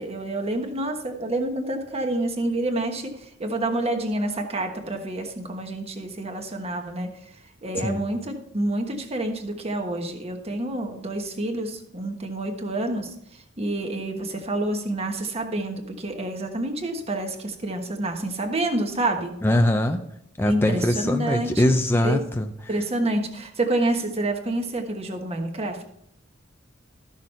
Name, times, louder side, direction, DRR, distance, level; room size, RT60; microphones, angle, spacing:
voice 1, 0.0-7.2 7.6-13.1 13.6-19.3 20.4-21.7 22.0-22.2 22.7-25.8, right 1 dB, 30° right, 4 dB, 1.2 m, -28 dB
voice 2, 19.4-20.0 20.4-22.5, left 1 dB, 10° left, 5 dB, 0.5 m, -22 dB
13.5 x 6.3 x 4.3 m, 0.74 s
head